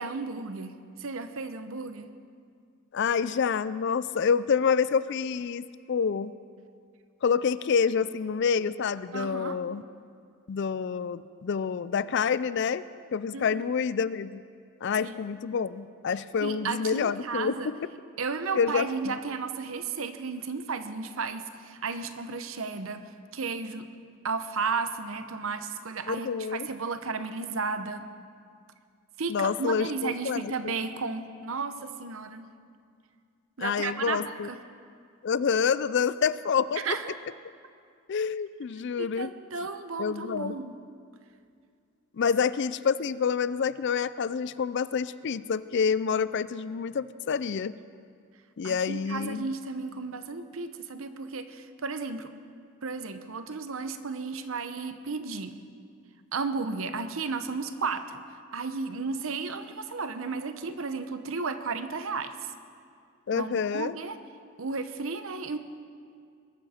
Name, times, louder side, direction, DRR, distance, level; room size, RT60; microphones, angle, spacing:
voice 1, 0.0-2.1 9.1-9.6 13.3-13.6 15.0-15.2 16.4-17.7 18.2-23.9 24.2-28.1 29.2-32.5 33.6-34.6 36.8-37.2 39.0-40.8 42.2-42.3 48.6-52.3 52.8-55.6 56.3-62.4 63.3-64.2 64.6-65.6, right 4 dB, 65° right, 10 dB, 0.8 m, -34 dB
voice 2, 2.9-6.3 7.2-9.8 10.5-12.8 13.1-14.4 14.8-17.5 18.5-19.2 26.1-26.7 29.3-30.7 33.6-34.5 35.2-36.8 38.1-39.3 40.0-40.6 42.2-47.7 48.6-49.5 63.3-63.9, left 6 dB, 55° left, 16 dB, 0.4 m, -27 dB
21.5 x 12.5 x 4.3 m, 2.2 s
head